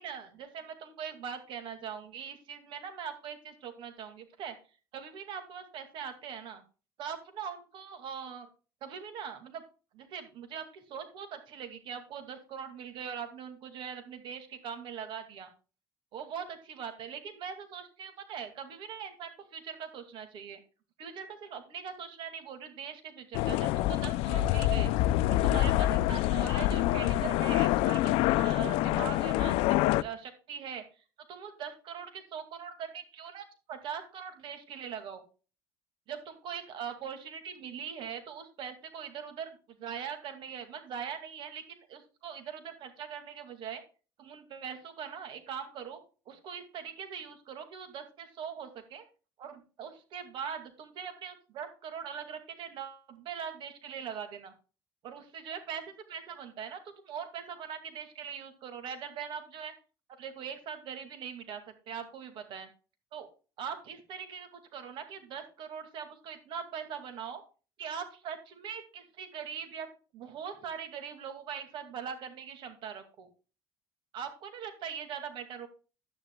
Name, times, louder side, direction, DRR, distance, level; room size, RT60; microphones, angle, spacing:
voice 1, 0.0-4.5 4.9-6.6 7.0-8.5 8.8-9.6 9.9-15.5 16.1-20.6 21.0-24.9 25.3-30.8 31.3-35.2 36.1-43.8 44.2-46.0 46.3-49.0 49.4-54.5 55.0-59.7 60.2-62.7 63.1-63.3 63.6-67.4 67.8-69.9 70.1-73.3 74.1-75.7, right 7 dB, 60° right, 8 dB, 2.2 m, -41 dB
sound 1, 23.3-30.0, left 15 dB, 75° left, 0.5 m, -26 dB
11.5 x 10.5 x 2.3 m, 0.35 s
cardioid pair, 125°, 10 cm